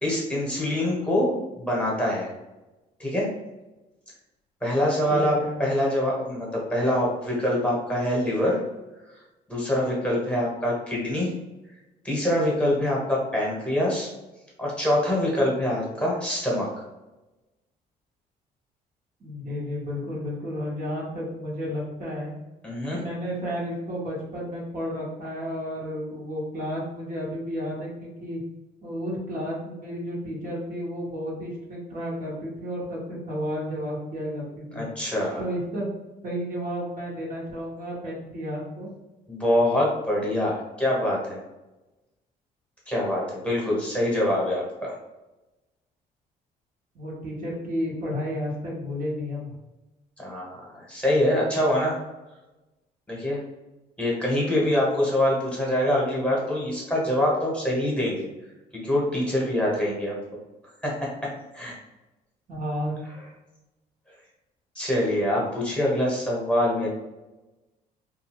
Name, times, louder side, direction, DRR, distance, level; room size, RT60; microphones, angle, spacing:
voice 1, 0.0-2.3 3.0-3.3 4.6-8.6 9.5-11.3 12.0-14.1 14.6-16.7 22.6-23.0 34.7-35.4 39.3-41.4 42.9-44.9 50.2-52.0 53.1-53.4 54.0-58.2 58.7-60.1 60.8-61.7 64.7-66.9, left 1 dB, 5° left, -4 dB, 1.2 m, -25 dB
voice 2, 5.1-5.6 19.2-22.3 22.9-28.4 28.8-34.8 35.4-35.8 36.2-38.9 46.9-49.5 62.5-63.0, equal, 55° right, -4 dB, 1.2 m, -32 dB
2.6 x 2.4 x 3.0 m, 1.0 s
cardioid pair, 85°, 17 cm